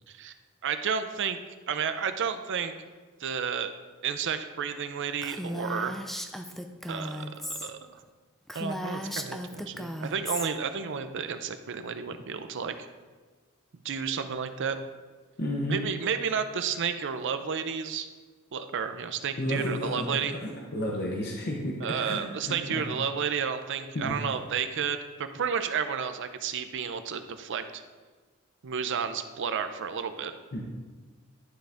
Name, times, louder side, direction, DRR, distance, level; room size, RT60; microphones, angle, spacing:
voice 1, 0.6-1.4 1.7-2.7 3.2-3.7 4.0-6.0 6.9-8.0 8.5-12.8 13.8-14.8 15.7-18.1 18.5-20.4 21.8-27.8 28.6-30.3, right 7 dB, 55° right, 9 dB, 0.5 m, -31 dB
Female speech woman speaking, 5.2-7.7 8.0-8.1 8.5-10.5, equal, ahead, 0.3 m, -36 dB
voice 2, 15.4-15.8 19.4-22.2 22.5-22.8 23.9-24.2 30.5-30.6, equal, 45° left, -2 dB, 0.8 m, -32 dB
11.0 x 3.9 x 3.5 m, 1.3 s
head